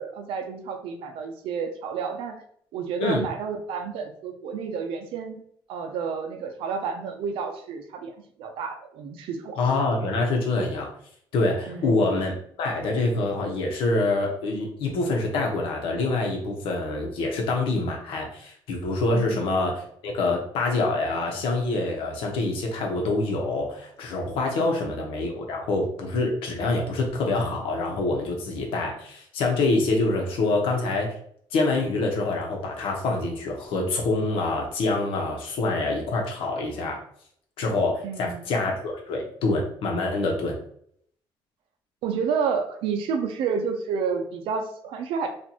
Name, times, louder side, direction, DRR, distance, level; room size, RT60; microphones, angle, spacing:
voice 1, 0.0-2.4 2.7-5.4 5.7-8.1 8.4-9.6 11.7-11.9 19.1-19.4 24.6-24.9 38.0-38.5 42.0-45.3, right 6 dB, 85° right, 5 dB, 0.6 m, -30 dB
voice 2, 9.6-10.9 11.3-12.3 12.6-31.1 31.5-37.0 37.6-40.6, left 2 dB, 85° left, 1 dB, 1.0 m, -26 dB
4.1 x 2.6 x 2.9 m, 0.64 s
cardioid pair, 165°, 9 cm